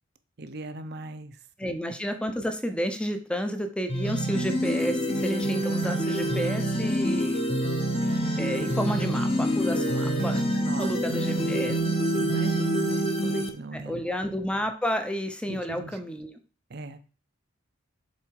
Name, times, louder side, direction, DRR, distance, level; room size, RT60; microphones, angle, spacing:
voice 1, 0.4-1.4 1.6-1.8 9.7-10.1 10.6-10.9 12.1-14.0 15.5-16.0 16.7-17.0, right 2 dB, 55° right, 10 dB, 0.7 m, -39 dB
voice 2, 1.6-7.4 8.4-10.4 10.8-11.8 13.7-16.4, equal, 5° left, 7 dB, 0.7 m, -31 dB
sound 1, 3.9-13.5, right 1 dB, 30° left, 0.9 m, -26 dB
sound 2, 5.1-7.2 7.6-10.4 10.8-11.8, left 1 dB, 60° left, 1.1 m, -37 dB
7.2 x 4.0 x 4.7 m, 0.39 s
head